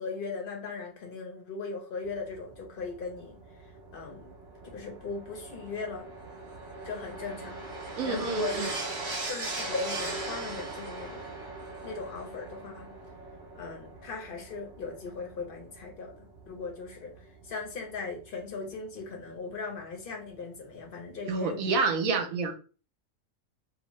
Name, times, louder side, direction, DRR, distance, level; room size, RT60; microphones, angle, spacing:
voice 1, 0.0-3.4 3.9-4.3 4.7-6.1 6.8-7.6 8.0-8.7 9.3-11.3 11.8-12.9 13.5-16.1 16.5-17.1 17.5-21.6, left 4 dB, 50° left, 0.7 m, -38 dB
sound 1, 2.0-18.4 19.5-19.6, right 2 dB, 35° right, 1.1 m, -40 dB
voice 2, 8.0-8.7 21.2-22.5, right 4 dB, 70° right, 1.0 m, -28 dB
2.8 x 2.1 x 3.0 m
omnidirectional pair, 1.5 m